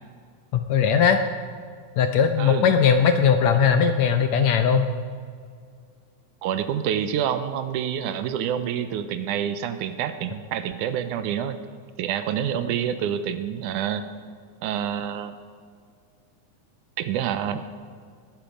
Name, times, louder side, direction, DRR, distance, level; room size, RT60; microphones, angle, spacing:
voice 1, 0.5-1.2 2.0-4.9, left 7 dB, 75° left, 7 dB, 1.7 m, -19 dB
voice 2, 6.4-11.6 12.0-14.0 14.6-15.3 17.0-17.6, right 9 dB, 80° right, 10 dB, 2.1 m, -27 dB
20.0 x 12.0 x 5.2 m, 2.1 s
omnidirectional pair, 3.8 m